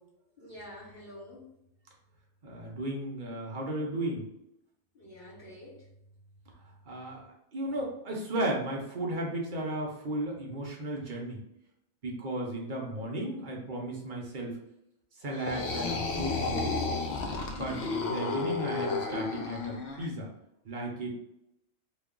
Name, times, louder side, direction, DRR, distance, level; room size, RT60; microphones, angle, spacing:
voice 1, 0.4-1.5 4.9-5.9, left 1 dB, 45° left, -9 dB, 1.1 m, -48 dB
voice 2, 2.4-4.2 6.9-11.4 12.0-14.5 15.2-16.8 17.4-20.3 20.6-21.1, right 1 dB, 45° right, -1 dB, 0.7 m, -35 dB
sound 1, 15.3-20.1, left 4 dB, 65° left, 0.6 m, -32 dB
3.0 x 2.3 x 3.7 m, 0.81 s
omnidirectional pair, 1.5 m